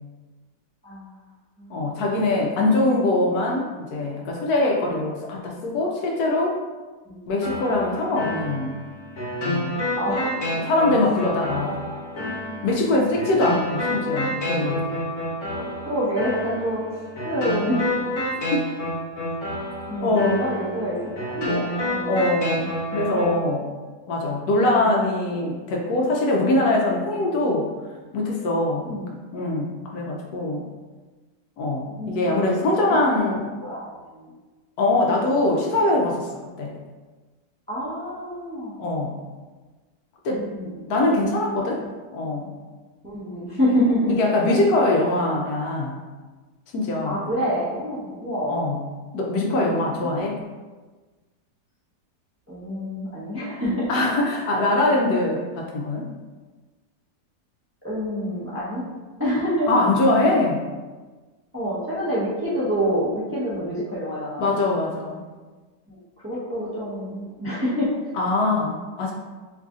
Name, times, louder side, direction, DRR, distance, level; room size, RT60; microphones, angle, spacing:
voice 1, 0.8-1.2 1.6-1.9 4.8-5.0 7.0-7.2 10.0-10.4 11.6-12.6 13.5-13.6 14.9-15.0 15.6-17.9 19.9-22.3 24.6-24.9 28.8-29.0 32.0-32.5 32.8-33.2 33.6-34.3 37.7-38.8 40.3-40.7 43.0-44.1 47.0-48.6 49.8-50.3 52.5-53.9 57.8-58.8 59.2-59.8 61.5-64.6 65.9-68.2, equal, 15° right, -9 dB, 0.5 m, -27 dB
voice 2, 1.7-6.6 7.3-8.8 9.4-9.8 10.6-11.8 12.6-14.8 18.5-18.6 20.0-20.4 22.1-23.7 24.1-27.7 28.1-30.7 31.6-33.5 34.8-36.3 36.6-36.8 38.8-39.2 40.2-40.5 40.9-41.8 42.1-42.5 44.1-46.0 46.7-47.2 48.5-48.8 49.1-50.4 53.9-56.1 59.7-60.6 64.4-65.2 68.2-69.1, left 2 dB, 70° left, -1 dB, 1.0 m, -22 dB
sound 1, 7.4-23.4, left 1 dB, 50° left, 1.3 m, -29 dB
3.2 x 2.5 x 3.6 m, 1.3 s
omnidirectional pair, 1.8 m